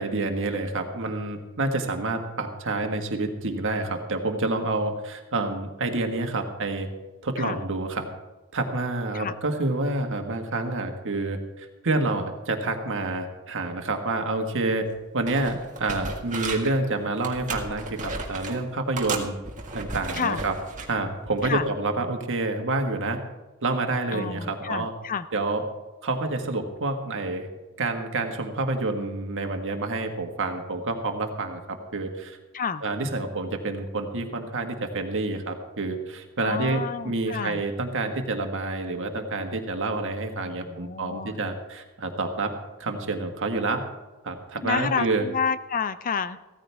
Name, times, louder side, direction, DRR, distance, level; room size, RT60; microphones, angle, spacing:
voice 1, 0.0-6.9 7.2-8.1 8.5-14.9 15.1-19.3 19.7-20.5 20.9-23.2 23.6-24.9 25.3-25.6 26.0-27.5 27.8-32.4 32.8-42.5 42.8-43.8 44.2-45.2, right 2 dB, 60° right, 4 dB, 1.7 m, -28 dB
sound 1, 14.8-15.0 15.3-16.8 17.2-18.6 19.0-20.9 21.4-21.6, right 4 dB, 35° right, 1.8 m, -35 dB
voice 2, 24.1-25.3 32.5-32.8 36.4-37.6 40.4-41.4 44.6-46.4, left 6 dB, 40° left, 13 dB, 0.5 m, -30 dB
16.0 x 14.0 x 3.5 m, 1.2 s
head